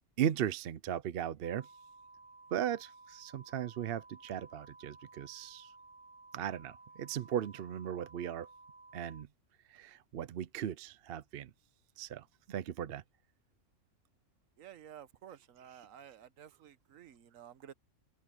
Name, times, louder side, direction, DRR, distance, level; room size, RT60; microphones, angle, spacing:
voice 1, 0.2-1.7 2.5-5.7 6.3-8.5 8.9-9.3 9.7-11.5 12.0-13.0, right 10 dB, 60° right, 0.7 m, -37 dB
sound 1, 1.4-9.2, right 3 dB, 40° right, 1.0 m, -56 dB
voice 2, 14.6-17.7, right 10 dB, 80° right, 1.2 m, -53 dB
omnidirectional pair, 1.4 m